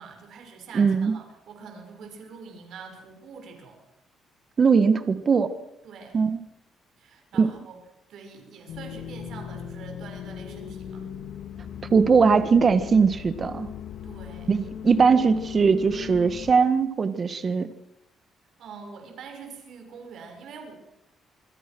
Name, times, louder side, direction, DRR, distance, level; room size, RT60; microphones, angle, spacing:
voice 1, 0.0-3.8 5.8-6.2 7.0-7.8 8.1-11.1 14.0-14.5 18.6-20.7, right 5 dB, 75° right, 4 dB, 6.5 m, -44 dB
voice 2, 0.7-1.1 4.6-5.5 6.1-6.4 7.4-7.5 11.9-13.7 14.5-17.7, right 5 dB, 40° right, 11 dB, 1.7 m, -20 dB
sound 1, 8.7-16.5, left 8 dB, 75° left, 2.1 m, -38 dB
27.5 x 21.0 x 6.3 m, 0.88 s
cardioid pair, 90°, 0 cm